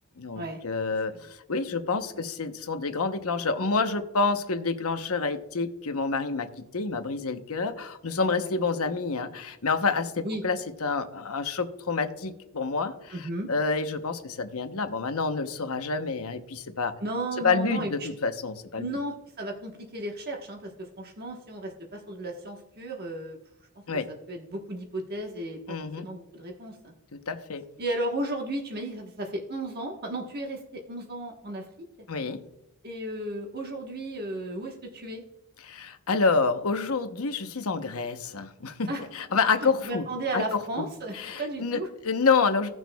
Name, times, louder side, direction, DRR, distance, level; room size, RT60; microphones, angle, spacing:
voice 1, 0.2-16.9 17.4-18.8 23.9-24.1 25.7-26.1 27.1-27.7 32.1-32.4 35.6-40.1 40.3-40.9 41.1-42.7, left 4 dB, 75° left, 8 dB, 0.9 m, -28 dB
voice 2, 8.4-8.7 10.2-10.4 13.1-13.5 17.0-18.1 18.8-23.4 24.3-26.9 27.8-31.7 32.8-35.2 38.9-39.1 39.6-41.9, right 1 dB, 45° right, 1 dB, 1.2 m, -34 dB
17.0 x 6.2 x 2.3 m, 0.90 s
head